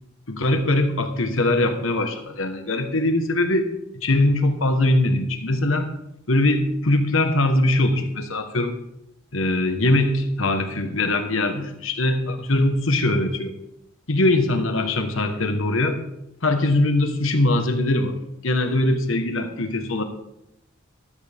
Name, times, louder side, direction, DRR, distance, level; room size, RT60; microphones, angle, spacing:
voice 1, 0.3-5.9 6.3-8.8 9.3-13.5 14.1-16.0 16.4-18.2 18.4-20.0, left 2 dB, 75° left, 7 dB, 1.3 m, -21 dB
13.0 x 12.5 x 3.5 m, 0.84 s
head